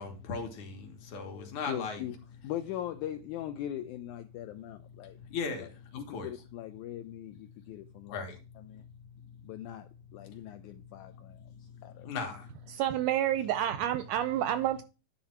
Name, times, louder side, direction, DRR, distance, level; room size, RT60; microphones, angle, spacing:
voice 1, 0.0-2.0 5.1-6.3 8.1-8.7 9.3-9.4 10.3-10.4 11.0-12.7, left 5 dB, 65° left, 2.8 m, -39 dB
voice 2, 1.7-2.2 2.4-5.2 5.6-5.7 6.0-8.2 8.6-8.8 9.4-12.1, left 12 dB, 80° left, 1.8 m, -41 dB
voice 3, 12.7-14.8, right 12 dB, 80° right, 1.8 m, -29 dB
10.0 x 4.0 x 5.8 m
omnidirectional pair, 4.0 m